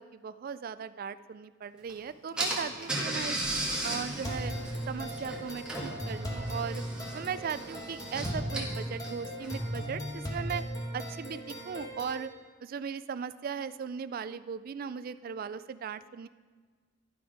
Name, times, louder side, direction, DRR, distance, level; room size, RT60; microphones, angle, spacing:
voice 1, 0.0-3.4 3.8-4.5 4.9-6.8 7.1-10.6 10.9-12.3 12.6-16.3, right 6 dB, 50° right, 14 dB, 0.3 m, -38 dB
Car / Engine, 1.9-2.0 2.4-9.8, right 1 dB, 5° right, 1.5 m, -36 dB
sound 1, 4.2-12.2, equal, 20° left, 1.3 m, -37 dB
11.0 x 6.0 x 5.0 m, 1.5 s
head